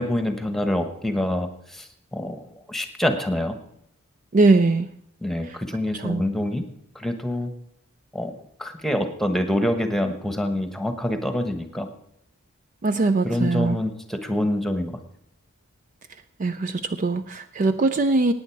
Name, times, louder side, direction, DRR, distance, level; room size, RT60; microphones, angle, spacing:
voice 1, 0.0-3.6 5.2-6.6 6.9-7.5 8.1-8.3 8.6-11.9 13.2-14.9, left 1 dB, ahead, 7 dB, 1.2 m, -26 dB
voice 2, 4.3-4.9 5.4-5.6 5.9-6.2 12.8-13.8 16.4-18.3, right 3 dB, 35° right, 12 dB, 0.4 m, -21 dB
17.0 x 9.2 x 4.6 m, 0.74 s
head